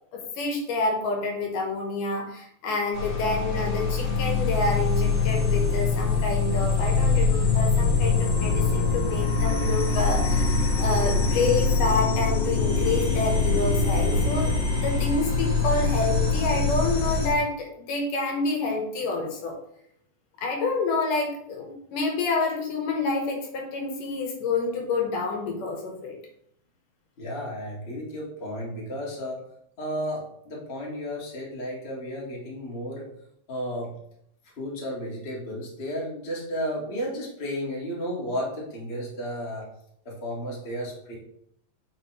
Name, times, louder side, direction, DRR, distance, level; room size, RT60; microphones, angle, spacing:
voice 1, 0.1-19.6 20.4-26.1, left 3 dB, 75° left, 1 dB, 2.7 m, -28 dB
sound 1, 2.9-17.3, left 4 dB, 50° left, 1.5 m, -23 dB
voice 2, 27.2-29.4 29.8-33.1 33.5-33.9 34.5-39.7 40.0-41.2, equal, 25° left, -4 dB, 1.5 m, -33 dB
8.3 x 5.1 x 3.2 m, 0.71 s
omnidirectional pair, 3.8 m